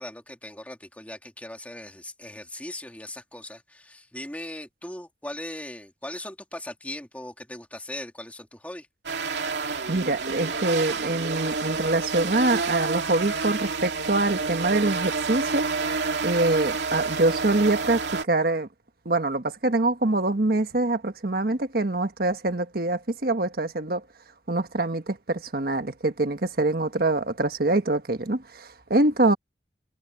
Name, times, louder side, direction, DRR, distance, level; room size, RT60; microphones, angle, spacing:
voice 1, 0.0-8.9, left 1 dB, 10° left, 2.5 m, -39 dB
sound 1, 9.1-18.2, right 4 dB, 80° right, 2.6 m, -29 dB
voice 2, 9.9-15.7 16.2-18.7 19.0-24.0 24.5-29.4, right 2 dB, 55° right, 1.4 m, -24 dB
head